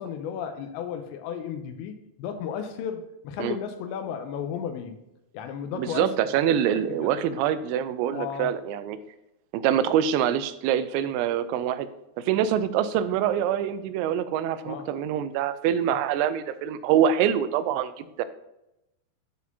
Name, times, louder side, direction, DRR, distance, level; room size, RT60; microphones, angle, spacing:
voice 1, 0.0-5.0 5.3-6.3 7.0-7.1 8.1-8.5 14.6-14.9 15.9-16.0, left 8 dB, 85° left, 7 dB, 2.9 m, -34 dB
voice 2, 5.8-9.0 9.5-11.9 12.2-18.3, right 9 dB, 90° right, 12 dB, 2.9 m, -25 dB
11.5 x 4.2 x 2.8 m, 0.88 s
omnidirectional pair, 5.2 m